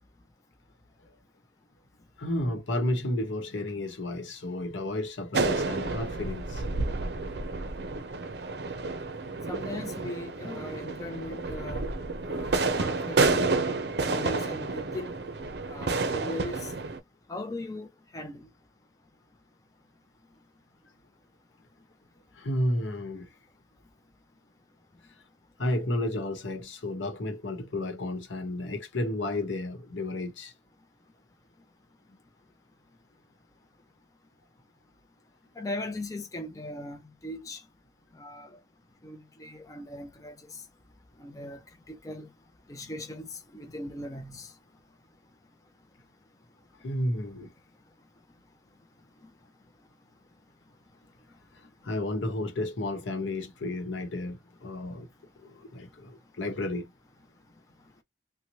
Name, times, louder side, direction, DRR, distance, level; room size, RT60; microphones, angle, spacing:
voice 1, 2.2-6.6 22.4-23.3 25.6-30.5 46.8-47.5 51.8-55.1 55.4-56.9, left 1 dB, 85° left, 0.9 m, -32 dB
sound 1, 5.3-17.0, right 3 dB, 60° right, 0.5 m, -30 dB
voice 2, 9.5-11.9 12.3-13.6 14.0-15.1 15.7-16.7 17.3-18.5 35.6-37.6 38.1-38.6 39.0-40.6 41.2-41.6 41.9-42.3 42.7-44.5, left 1 dB, 20° left, 0.4 m, -39 dB
2.9 x 2.1 x 2.7 m
head